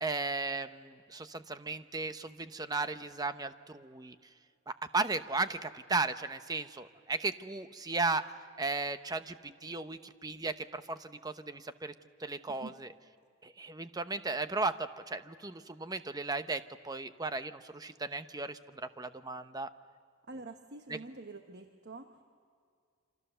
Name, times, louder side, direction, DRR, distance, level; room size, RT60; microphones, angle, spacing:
voice 1, 0.0-4.2 4.7-8.2 8.6-11.9 12.2-12.9 13.4-19.7 20.9-21.0, right 3 dB, 20° right, 10 dB, 0.8 m, -35 dB
voice 2, 20.3-22.2, right 3 dB, 55° right, 6 dB, 1.1 m, -46 dB
28.0 x 26.0 x 6.8 m, 2.2 s
head